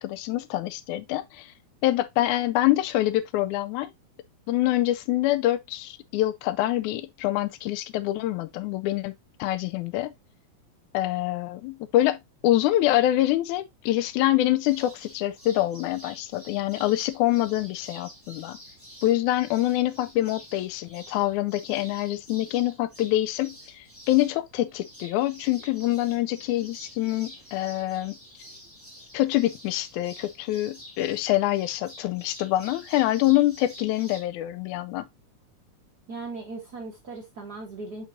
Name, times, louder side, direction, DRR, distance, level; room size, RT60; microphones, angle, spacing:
voice 1, 0.0-1.5 1.8-3.9 4.5-9.1 9.4-10.1 10.9-18.6 19.0-28.2 29.1-35.1, left 15 dB, 85° left, 2.0 m, -25 dB
sound 1, 14.6-34.2, equal, 5° left, 2.2 m, -48 dB
voice 2, 36.1-38.1, right 3 dB, 45° right, 1.4 m, -38 dB
7.2 x 5.6 x 2.6 m
omnidirectional pair, 3.5 m